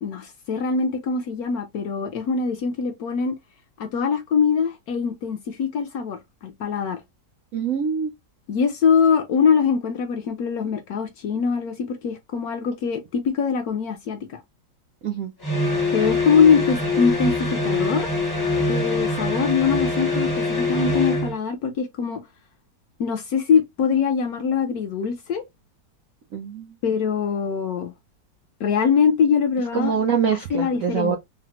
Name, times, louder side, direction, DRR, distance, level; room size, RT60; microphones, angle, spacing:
voice 1, 0.0-3.3 3.8-7.0 8.5-14.4 15.9-18.1 18.7-22.2 23.0-25.4 26.8-27.9 28.6-29.9 30.5-31.1, left 6 dB, 70° left, 0.9 m, -23 dB
voice 2, 7.5-8.1 15.0-15.3 26.3-26.7 29.7-31.2, right 7 dB, 75° right, 0.7 m, -24 dB
sound 1, 15.4-21.4, left 2 dB, 25° left, 0.5 m, -24 dB
3.2 x 2.0 x 2.9 m
omnidirectional pair, 2.0 m